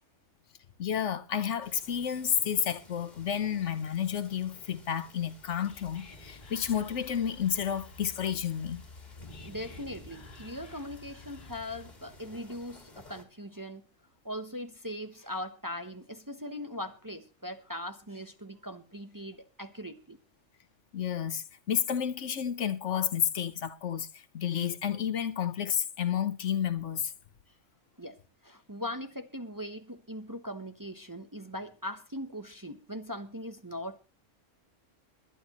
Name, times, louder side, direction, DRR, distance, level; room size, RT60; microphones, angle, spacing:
voice 1, 0.8-8.8 20.9-27.1, left 8 dB, 70° left, 1.3 m, -31 dB
sound 1, 1.6-13.2, left 1 dB, 35° left, 2.1 m, -53 dB
Whispering, 5.2-12.2, left 4 dB, 85° left, 1.9 m, -52 dB
voice 2, 9.4-13.8 14.2-20.2 28.0-34.0, left 1 dB, 20° right, 0.8 m, -40 dB
21.5 x 11.5 x 3.0 m
omnidirectional pair, 1.3 m